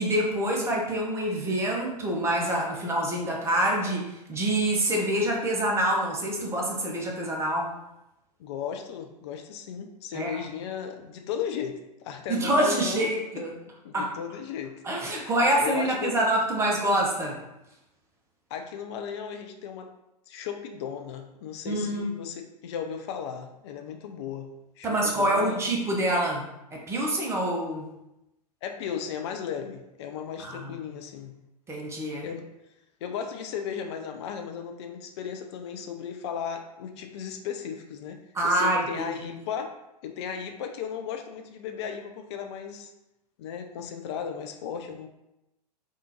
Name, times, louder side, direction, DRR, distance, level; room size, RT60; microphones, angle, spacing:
voice 1, 0.0-7.7 10.1-10.4 12.3-13.5 13.9-14.1 14.8-17.4 21.7-22.1 24.8-26.4 26.7-27.9 30.4-30.8 31.7-32.3 38.3-39.1, right 1 dB, 15° right, -1 dB, 0.6 m, -26 dB
voice 2, 8.4-13.1 13.8-14.8 15.2-15.3 15.6-16.2 18.5-19.9 20.3-24.5 24.8-25.6 28.6-31.3 32.2-32.5 33.0-42.9 43.4-45.1, left 7 dB, 45° left, 5 dB, 0.4 m, -36 dB
3.6 x 2.4 x 2.8 m, 0.90 s
figure-of-eight pair, 100°, 21 cm